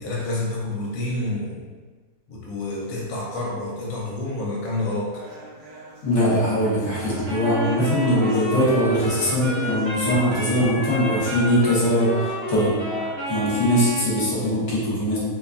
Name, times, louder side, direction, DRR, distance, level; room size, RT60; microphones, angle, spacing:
voice 1, 0.0-1.7 2.3-5.1, left 2 dB, 70° left, -4 dB, 1.1 m, -28 dB
sound 1, 5.1-13.1, right 2 dB, 75° right, 1.0 m, -38 dB
voice 2, 6.0-12.8 13.3-15.2, equal, 55° left, -7 dB, 1.1 m, -21 dB
Wind instrument woodwind instrument, 7.2-14.2, equal, 55° right, 0.9 m, -30 dB
2.7 x 2.2 x 2.4 m, 1.4 s
omnidirectional pair, 1.7 m